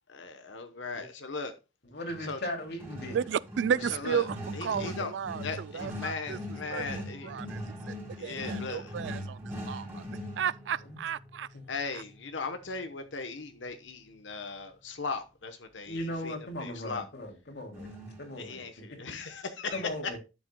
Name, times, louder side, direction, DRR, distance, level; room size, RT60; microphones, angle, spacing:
voice 1, 0.1-1.5 2.2-2.4 3.8-4.3 4.5-5.1 5.4-7.3 8.2-8.9 11.7-17.1 18.4-19.9, left 4 dB, 80° left, 1.0 m, -38 dB
voice 2, 1.9-3.3 3.7-3.8 10.8-11.0 11.5-11.6 15.9-18.7 19.1-19.2 19.7-20.2, left 1 dB, 60° left, 2.6 m, -38 dB
sound 1, 2.1-12.9 17.7-18.4, equal, 15° right, 3.2 m, -41 dB
voice 3, 3.1-6.4 6.7-6.8 7.2-10.0 10.4-11.5, right 7 dB, 70° right, 0.3 m, -33 dB
11.5 x 7.3 x 2.2 m
head